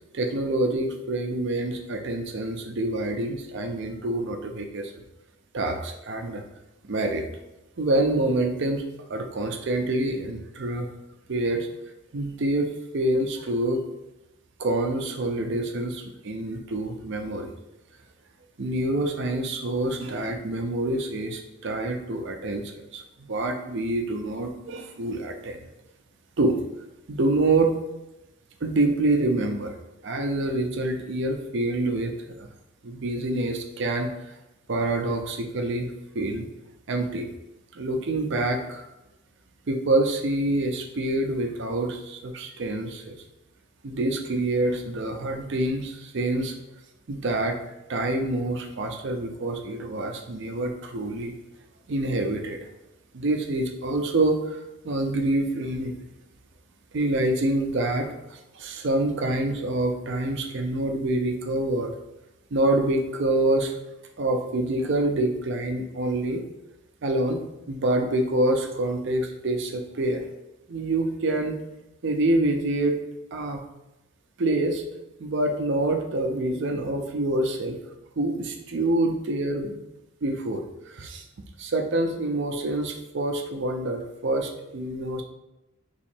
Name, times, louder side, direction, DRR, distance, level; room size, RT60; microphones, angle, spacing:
voice 1, 0.1-5.0 5.5-6.4 6.8-7.2 7.8-10.9 11.3-11.7 12.1-13.8 14.6-17.5 18.6-25.6 26.4-26.6 27.1-27.8 28.6-32.5 32.8-34.4 34.7-36.5 36.9-37.3 37.7-38.9 39.7-43.2 43.8-46.5 47.1-47.6 47.9-51.3 51.9-52.6 53.1-55.9 56.9-61.9 62.5-63.8 64.2-66.4 67.0-70.2 70.7-71.5 72.0-73.0 73.3-73.6 74.4-74.8 75.2-77.8 78.2-79.8 80.2-81.2 81.6-85.2, right 2 dB, 55° right, 4 dB, 0.5 m, -26 dB
3.0 x 2.8 x 4.3 m, 0.95 s
head